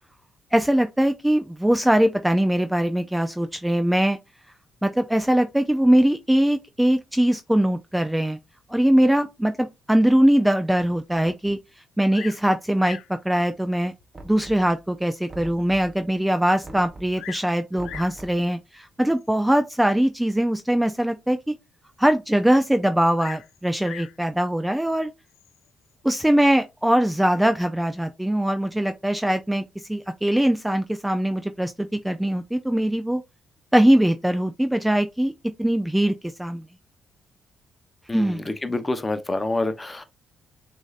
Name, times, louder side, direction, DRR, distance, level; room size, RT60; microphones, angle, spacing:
voice 1, 0.5-4.2 4.8-8.4 8.7-11.6 12.0-13.0 13.2-13.9 14.2-21.5 22.0-25.1 26.0-29.6 29.9-33.2 33.7-35.3 35.6-36.6 38.1-38.5, right 1 dB, 5° right, 0.4 m, -21 dB
Bird vocalization bird call bird song, 12.1-12.5 12.8-13.2 14.0-14.1 14.7-14.8 15.3-15.4 15.6-15.7 16.8-17.5 17.8-18.2 19.2-19.5 23.1-24.2 25.3-25.7, left 10 dB, 90° left, 0.4 m, -41 dB
Knock, 14.1-14.9 15.3-16.1 16.6-17.3 17.8-18.5, right 2 dB, 25° right, 0.9 m, -42 dB
voice 2, 38.1-40.0, left 2 dB, 20° left, 0.7 m, -27 dB
6.2 x 2.7 x 2.4 m
cardioid pair, 90°, 0 cm